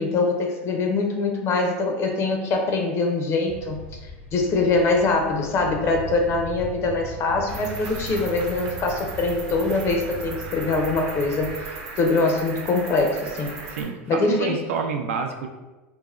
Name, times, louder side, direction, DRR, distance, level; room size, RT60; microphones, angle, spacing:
voice 1, 0.0-3.8 4.3-13.5 14.1-14.5, left 3 dB, 40° left, 3 dB, 0.4 m, -23 dB
sound 1, 3.5-11.5, equal, 85° left, 0.7 m, -39 dB
Cricket, 7.5-13.8, right 3 dB, 55° right, 0.7 m, -37 dB
voice 2, 13.7-15.5, right 5 dB, 85° right, 4 dB, 0.3 m, -28 dB
3.3 x 2.0 x 2.3 m, 1.1 s
supercardioid pair, 110°, 7 cm